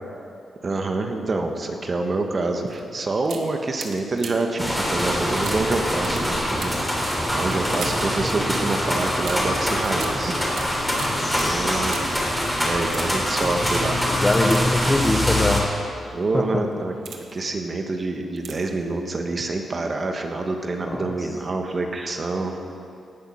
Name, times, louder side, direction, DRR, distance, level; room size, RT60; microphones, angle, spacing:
voice 1, 0.6-6.8 7.3-10.4 11.3-12.0 12.6-14.0 16.1-16.9 17.3-22.5, right 3 dB, 45° right, 4 dB, 1.4 m, -26 dB
sound 1, 2.7-2.8 3.2-4.6 5.4-8.2 9.2-12.3 12.8-13.4 14.4-15.2 15.9-16.1 16.7-17.5 18.4-18.8 19.1-19.2, right 5 dB, 75° right, 1.2 m, -40 dB
sound 2, 4.6-15.6, equal, 5° left, 3.6 m, -24 dB
voice 2, 11.1-12.0 14.1-15.6 16.3-16.4 20.8-21.1, left 1 dB, 20° left, 5 dB, 1.2 m, -24 dB
17.5 x 6.5 x 6.3 m, 2.5 s
cardioid pair, 65°, 0 cm